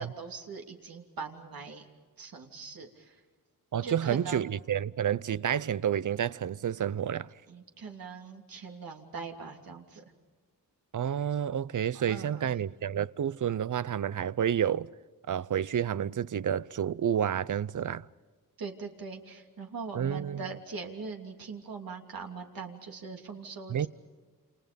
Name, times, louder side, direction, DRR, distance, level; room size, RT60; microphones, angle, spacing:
voice 1, 0.0-1.8 2.2-3.2 3.8-4.4 7.5-10.0 11.9-12.5 18.6-23.9, right 4 dB, 85° right, 3.0 m, -41 dB
voice 2, 3.7-7.3 10.9-14.9 15.3-18.1 19.9-20.5 23.7-23.9, right 9 dB, 60° right, 0.7 m, -30 dB
29.0 x 28.5 x 5.3 m
wide cardioid pair, 110°, 34 cm